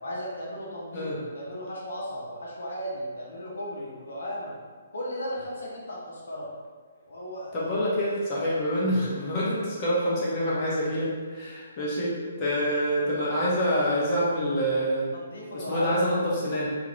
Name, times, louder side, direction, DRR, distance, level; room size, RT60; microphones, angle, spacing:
voice 1, 0.0-4.5 4.9-6.5 7.1-7.5 15.1-16.0 16.3-16.5, equal, 70° left, -5 dB, 0.9 m, -36 dB
voice 2, 0.9-1.2 7.5-15.1 15.5-16.7, equal, 30° left, -7 dB, 1.1 m, -26 dB
3.8 x 2.6 x 3.1 m, 1.5 s
figure-of-eight pair, 130°, 0 cm